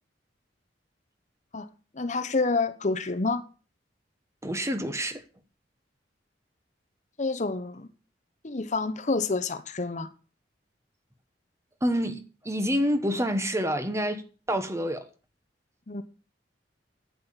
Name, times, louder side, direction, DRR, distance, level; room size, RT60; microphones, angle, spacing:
voice 1, 1.9-3.4 7.2-7.9 8.4-10.1 15.9-16.0, left 3 dB, 40° left, 0.9 m, -28 dB
voice 2, 4.4-5.2 11.8-15.1, equal, 15° right, 1.2 m, -28 dB
11.0 x 8.6 x 7.2 m
head